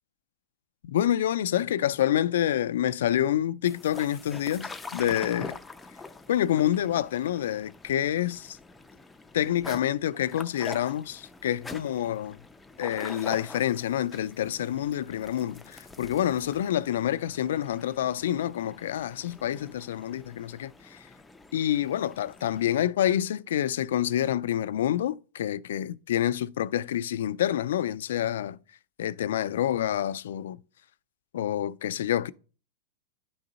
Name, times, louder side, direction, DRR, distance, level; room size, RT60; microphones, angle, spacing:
voice 1, 0.8-5.6 6.3-8.6 9.3-12.4 12.8-21.1 21.5-28.6 29.0-30.6 31.3-32.3, left 11 dB, 80° left, 0.4 m, -27 dB
sound 1, 3.6-22.6, left 3 dB, 5° left, 0.4 m, -45 dB
10.0 x 3.8 x 4.0 m
supercardioid pair, 165°, 0 cm